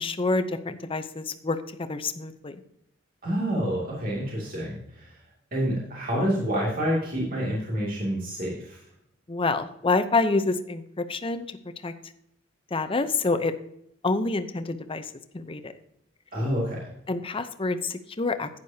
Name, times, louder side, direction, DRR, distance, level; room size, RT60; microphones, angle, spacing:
voice 1, 0.0-1.6 1.9-2.6 9.3-11.5 11.8-11.9 12.7-13.5 14.0-15.0 15.3-15.7 17.1-18.5, left 3 dB, 30° left, 9 dB, 0.7 m, -27 dB
voice 2, 3.2-5.1 5.5-8.8 16.3-16.8, equal, 50° right, -5 dB, 2.6 m, -28 dB
11.5 x 9.5 x 2.8 m, 0.76 s
head